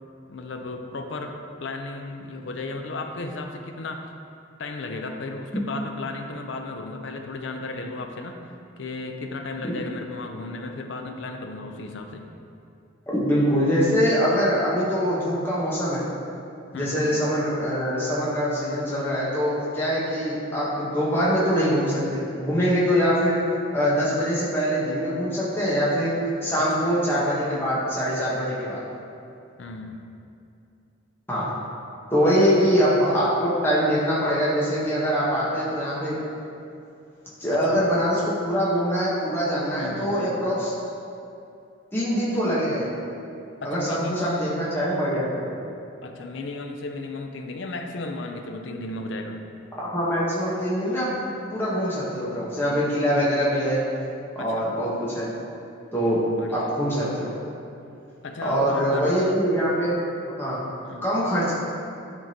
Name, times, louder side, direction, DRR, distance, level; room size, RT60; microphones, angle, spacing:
voice 1, 0.3-4.1 4.6-12.3 16.7-17.0 26.6-26.7 29.6-30.1 32.3-32.6 37.5-37.8 39.8-40.4 43.6-44.7 46.0-49.4 54.4-54.7 56.4-56.7 58.2-59.4 60.8-61.1, left 2 dB, 65° left, 5 dB, 0.5 m, -34 dB
voice 2, 13.1-16.1 16.7-23.4 23.7-26.1 26.4-28.8 31.3-31.5 32.1-36.2 37.4-40.7 41.9-42.9 43.6-45.6 49.8-53.8 54.3-55.3 55.9-56.2 56.5-57.3 58.4-59.9 60.4-60.6 61.0-61.5, equal, 10° left, -8 dB, 1.0 m, -23 dB
10.5 x 3.7 x 2.8 m, 2.6 s
head